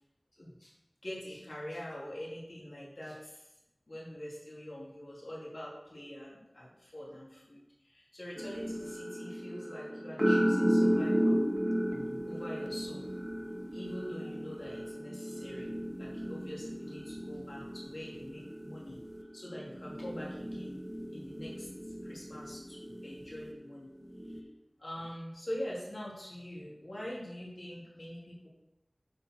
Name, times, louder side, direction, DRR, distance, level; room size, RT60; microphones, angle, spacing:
voice 1, 0.3-0.7 1.0-3.5 3.9-11.4 12.3-13.1 13.7-19.0 19.3-20.8 21.1-23.9 24.2-24.4 24.8-28.5, equal, 70° left, -6 dB, 2.7 m, -44 dB
sound 1, 8.4-23.5 24.1-24.4, equal, 5° right, 1.1 m, -34 dB
7.6 x 6.3 x 4.4 m, 0.92 s
wide cardioid pair, 45°, 0 cm